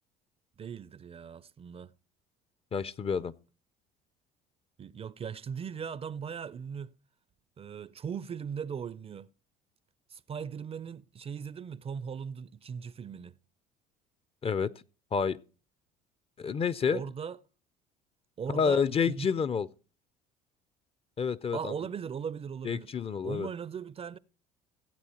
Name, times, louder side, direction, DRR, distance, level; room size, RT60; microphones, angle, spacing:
voice 1, 0.6-1.9 4.8-7.0 7.6-9.3 10.1-13.4 16.9-17.4 18.4-19.3 21.5-22.9 23.2-24.2, right 7 dB, 30° right, 0.4 m, -39 dB
voice 2, 2.7-3.3 14.4-14.7 15.1-15.4 16.4-17.0 18.5-19.7 21.2-21.7 22.6-23.5, left 6 dB, 30° left, 0.4 m, -29 dB
16.5 x 8.2 x 2.9 m
hypercardioid pair, 75°, 20 cm